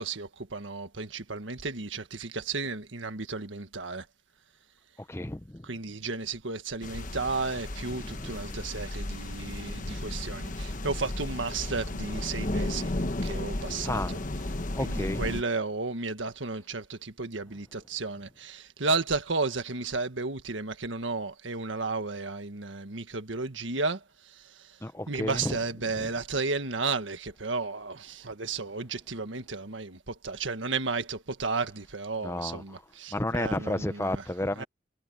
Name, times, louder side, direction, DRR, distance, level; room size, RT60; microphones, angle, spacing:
voice 1, 0.0-4.0 5.6-12.9 13.2-14.2 14.7-24.8 25.1-34.2 34.6-34.7, right 3 dB, 80° right, 1.7 m, -33 dB
voice 2, 5.0-5.7 7.9-8.6 13.8-14.3 14.7-15.4 24.8-25.6 26.0-26.1 32.2-32.8 33.1-34.6, left 1 dB, 15° left, 0.9 m, -32 dB
sound 1, 6.8-15.4, left 1 dB, 45° left, 1.1 m, -34 dB
head